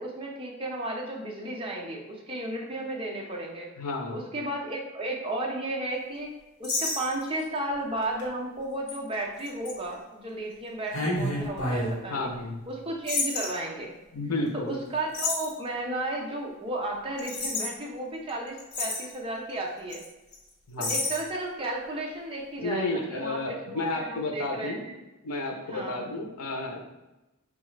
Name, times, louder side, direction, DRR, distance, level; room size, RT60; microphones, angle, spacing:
voice 1, 0.0-3.7 4.1-6.3 6.6-12.3 12.7-13.9 14.5-20.0 20.8-24.9 25.7-26.0, right 1 dB, 25° right, -1 dB, 0.6 m, -34 dB
voice 2, 3.8-4.2 12.1-12.6 14.1-14.8 20.7-21.0 22.6-24.9 25.2-26.8, left 2 dB, 85° left, 2 dB, 0.7 m, -31 dB
sound 1, 6.6-7.4 8.0-8.2 8.9-9.0 9.4-9.7 10.9-11.9 13.1-13.5 15.1-15.5 17.2-17.7 18.3-18.4 18.6-19.1 19.9-20.1 20.3-20.4 20.8-21.2, left 2 dB, 60° left, 1.2 m, -29 dB
4.3 x 2.4 x 3.1 m, 1.0 s
head